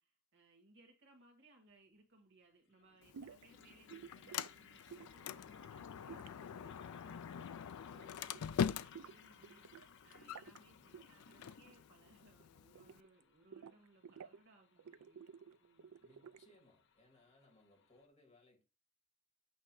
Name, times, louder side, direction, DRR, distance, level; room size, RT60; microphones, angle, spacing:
voice 1, 0.0-15.3 15.6-16.0, right 2 dB, 55° right, 1.9 m, -67 dB
sound 1, 1.7-1.8 2.7-18.1, left 5 dB, 55° left, 0.8 m, -64 dB
Sliding door, 3.0-13.0, left 8 dB, 85° left, 0.4 m, -44 dB
sound 2, 3.1-3.5 3.9-4.5 4.9-5.3 6.1-7.5 7.8-8.1 8.3-9.9 10.1-10.6 10.9-11.8 12.1-13.2 13.5-14.4 14.8-16.6, right 7 dB, 80° right, 0.4 m, -54 dB
voice 2, 10.7-11.1 16.0-18.6, left 2 dB, 30° left, 2.5 m, -68 dB
8.2 x 3.4 x 4.8 m
head